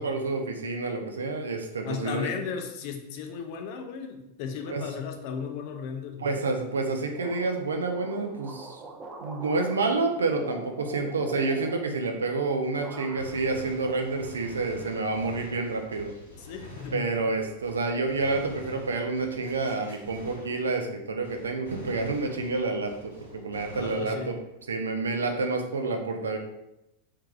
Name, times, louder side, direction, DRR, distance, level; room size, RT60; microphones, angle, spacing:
voice 1, 0.0-2.3 4.7-4.9 6.2-8.8 9.2-16.1 16.9-24.3 24.7-26.4, right 3 dB, 70° right, 4 dB, 0.4 m, -29 dB
voice 2, 1.8-6.4 16.3-17.2 23.7-24.3, left 6 dB, 45° left, 5 dB, 0.5 m, -35 dB
sound 1, 7.2-12.4 12.7-13.5 13.8-14.7, right 2 dB, 25° right, 0.5 m, -43 dB
Gunshot gunfire, 13.2-21.0 21.2-24.6, left 1 dB, 80° left, 1.1 m, -47 dB
3.3 x 3.2 x 2.4 m, 0.87 s
figure-of-eight pair, 90°, 0 cm